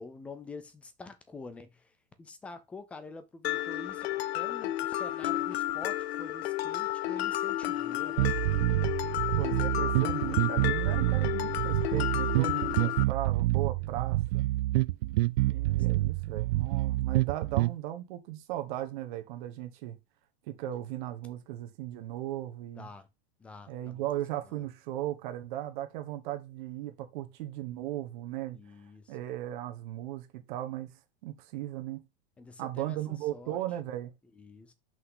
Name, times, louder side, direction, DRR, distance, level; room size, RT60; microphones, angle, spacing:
voice 1, 0.0-1.8 2.2-8.3 22.7-23.1 23.4-24.0 28.5-29.0 32.4-33.0 33.3-33.6 34.4-34.7, left 3 dB, 5° left, 0.3 m, -46 dB
Mallet percussion, 3.4-13.0, left 14 dB, 75° left, 0.7 m, -32 dB
sound 1, 8.2-17.7, right 18 dB, 65° right, 0.5 m, -27 dB
voice 2, 9.4-14.5 15.5-20.0 20.5-22.9 23.7-28.6 29.1-32.0 32.6-34.1, right 13 dB, 50° right, 1.3 m, -37 dB
6.0 x 5.4 x 3.8 m
supercardioid pair, 160°, 31 cm